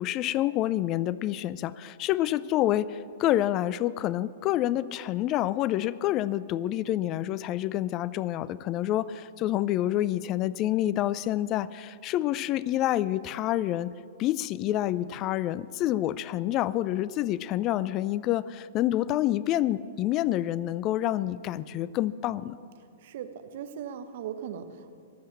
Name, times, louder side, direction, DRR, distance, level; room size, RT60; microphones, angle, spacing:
voice 1, 0.0-13.9 14.2-22.6, left 13 dB, 35° left, 19 dB, 0.4 m, -28 dB
voice 2, 23.0-25.0, right 8 dB, 60° right, 9 dB, 1.1 m, -38 dB
22.5 x 7.8 x 7.3 m, 2.3 s
hypercardioid pair, 110°, 0 cm